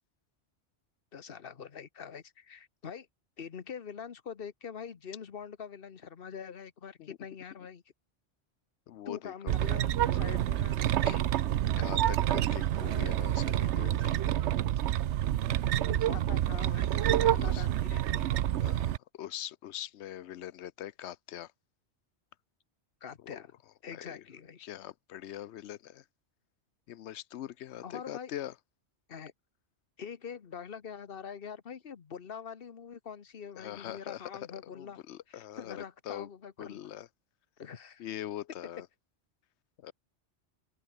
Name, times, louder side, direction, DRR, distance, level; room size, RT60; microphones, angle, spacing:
voice 1, 1.1-3.1 3.4-7.8 9.1-11.1 15.9-18.4 23.0-23.5 23.8-24.6 27.8-28.3 29.1-29.3 30.0-35.0 35.3-36.9 37.6-38.1, left 7 dB, 55° left, 1.3 m, -44 dB
voice 2, 8.9-9.7 11.0-11.2 11.6-14.2 16.9-17.7 18.6-21.5 23.2-23.4 23.9-24.2 24.6-26.0 26.9-28.5 33.6-36.3 36.6-37.1 38.0-38.9 39.8-39.9, left 12 dB, 75° left, 0.9 m, -43 dB
sound 1, 9.5-19.0, right 12 dB, 75° right, 0.9 m, -28 dB
open air
omnidirectional pair, 1.2 m